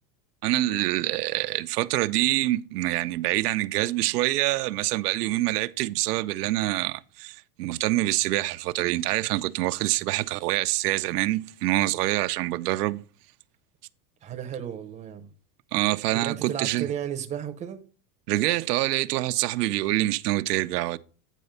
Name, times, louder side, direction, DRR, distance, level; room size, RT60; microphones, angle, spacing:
voice 1, 0.4-13.0 15.7-16.9 18.3-21.0, right 17 dB, 85° right, 0.6 m, -26 dB
voice 2, 14.2-15.3 16.1-17.8, right 9 dB, 15° right, 0.7 m, -34 dB
9.2 x 4.2 x 5.5 m
supercardioid pair, 140°, 46 cm